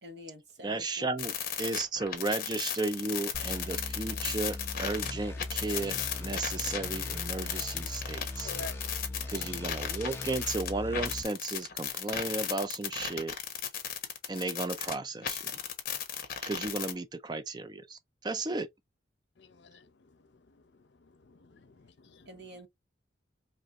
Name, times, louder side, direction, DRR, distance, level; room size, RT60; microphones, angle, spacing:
voice 1, 0.0-1.1 22.3-22.7, equal, 65° right, 1.1 m, -48 dB
voice 2, 0.6-8.5 9.3-13.4 14.3-15.6 16.4-18.7, right 3 dB, 25° right, 0.4 m, -34 dB
sound 1, 1.2-5.1 5.4-15.0 15.2-16.9, left 9 dB, 50° left, 1.0 m, -35 dB
sound 2, 3.3-11.2, left 2 dB, 15° left, 0.6 m, -40 dB
voice 3, 8.4-9.6 19.4-22.6, left 3 dB, 70° left, 0.7 m, -50 dB
4.7 x 3.0 x 2.5 m
head